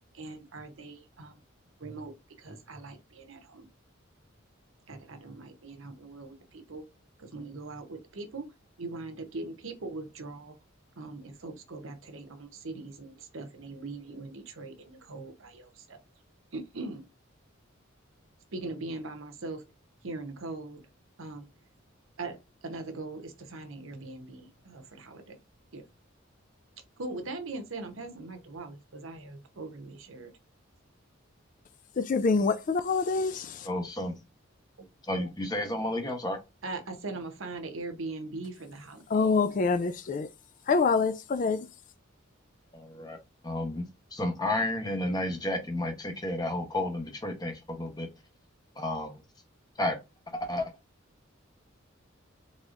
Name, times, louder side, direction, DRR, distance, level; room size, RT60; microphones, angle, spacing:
voice 1, 0.1-1.4 1.8-3.7 4.9-6.9 7.2-8.5 8.8-10.6 11.0-16.0 16.5-17.0 18.5-19.6 20.0-20.8 21.2-21.5 22.2-25.4 25.7-25.9 27.0-30.3 35.2-35.3 36.6-39.2, right 3 dB, 75° right, 0.9 m, -41 dB
voice 2, 32.0-33.7 39.1-40.3 40.7-41.7, left 4 dB, 40° left, 0.3 m, -26 dB
voice 3, 33.6-34.1 35.1-36.4 42.7-43.2 43.4-43.9 44.1-48.1 48.8-49.2 49.8-50.0 50.3-50.7, left 1 dB, 20° left, 0.9 m, -31 dB
4.2 x 3.5 x 2.5 m
head